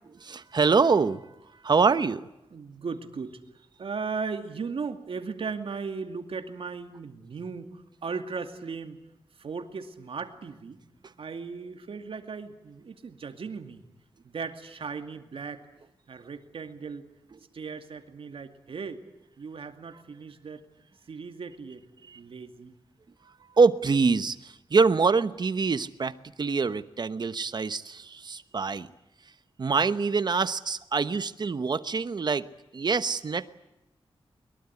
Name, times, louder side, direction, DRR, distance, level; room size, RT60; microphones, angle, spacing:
voice 1, 0.1-1.2 1.6-2.3 22.1-22.2 23.6-28.9 29.6-32.5 32.7-33.5, right 4 dB, 50° right, 13 dB, 1.0 m, -25 dB
voice 2, 2.5-3.4 3.8-9.0 9.4-10.8 11.2-13.8 14.2-15.6 16.1-17.1 17.5-19.0 19.4-20.6 21.1-21.8 22.1-22.7, right 5 dB, 70° right, 7 dB, 2.5 m, -37 dB
22.5 x 22.5 x 9.8 m, 0.88 s
wide cardioid pair, 165°, 10 cm